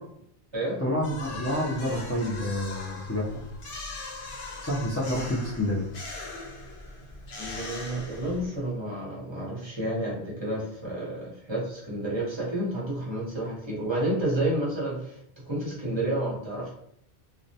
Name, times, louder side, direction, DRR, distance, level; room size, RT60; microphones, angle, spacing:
voice 1, 0.8-3.3 4.6-5.9, left 1 dB, 20° left, -8 dB, 0.4 m, -28 dB
sound 1, 1.0-8.7, left 3 dB, 65° left, 0.7 m, -40 dB
voice 2, 7.4-15.2 15.4-16.7, right 1 dB, 30° right, -6 dB, 0.8 m, -30 dB
2.2 x 2.1 x 2.7 m, 0.72 s
omnidirectional pair, 1.1 m